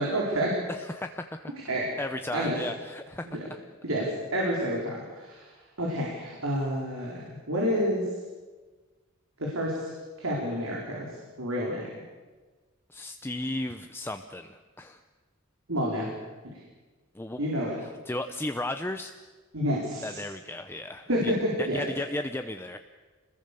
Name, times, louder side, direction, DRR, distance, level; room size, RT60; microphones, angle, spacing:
voice 1, 0.0-0.6 1.7-1.9 2.3-2.6 3.3-3.5 3.8-5.5 5.8-8.0 9.4-9.8 10.2-11.1 11.4-11.9 15.7-16.1 17.4-17.8 19.5-20.2 21.1-21.9, equal, 85° right, -3 dB, 4.8 m, -29 dB
voice 2, 0.7-1.5 2.0-3.6 12.9-15.0 17.1-17.5 17.8-19.1 20.0-21.3 21.6-22.8, left 1 dB, 10° left, 7 dB, 0.7 m, -35 dB
27.5 x 21.0 x 7.0 m, 1.3 s
head